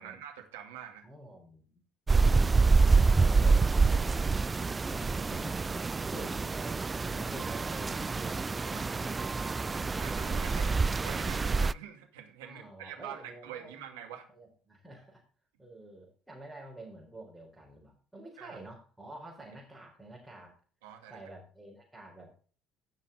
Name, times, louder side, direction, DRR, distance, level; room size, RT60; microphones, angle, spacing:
voice 1, 0.0-1.1 5.2-5.3 8.7-9.0 9.5-9.6 9.8-14.3 18.4-18.6 20.8-21.2, right 9 dB, 70° right, 3 dB, 2.3 m, -45 dB
voice 2, 1.0-1.7 2.1-2.4 2.9-8.5 12.4-14.0 14.3-15.2 15.6-20.5 21.1-22.5, right 1 dB, 5° right, -4 dB, 4.3 m, -49 dB
sound 1, 2.1-11.7, right 4 dB, 25° right, 0.3 m, -27 dB
16.5 x 5.8 x 4.0 m, 0.41 s
figure-of-eight pair, 55°, 0 cm